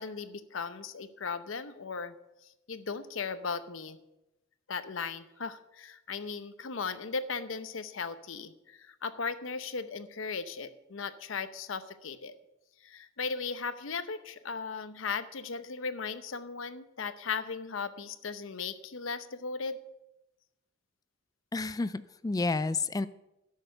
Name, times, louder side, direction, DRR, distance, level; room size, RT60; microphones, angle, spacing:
voice 1, 0.0-2.1 2.7-4.0 4.7-12.4 12.8-19.8, left 5 dB, 90° left, 12 dB, 0.8 m, -37 dB
voice 2, 21.5-23.1, left 3 dB, 20° left, 16 dB, 0.3 m, -30 dB
11.0 x 6.5 x 6.7 m, 0.92 s
head